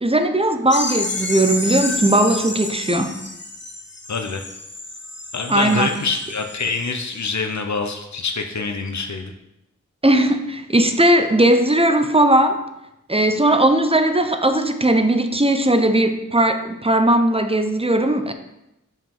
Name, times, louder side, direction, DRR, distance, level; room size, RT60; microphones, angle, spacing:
voice 1, 0.0-3.2 5.5-5.9 10.0-12.6 13.1-18.3, right 1 dB, 20° right, 8 dB, 0.7 m, -18 dB
sound 1, 0.7-6.8, left 2 dB, 35° left, 1.1 m, -30 dB
voice 2, 4.1-4.4 5.3-9.3, left 4 dB, 65° left, 5 dB, 0.8 m, -25 dB
5.6 x 5.2 x 5.4 m, 0.89 s
wide cardioid pair, 50°, 31 cm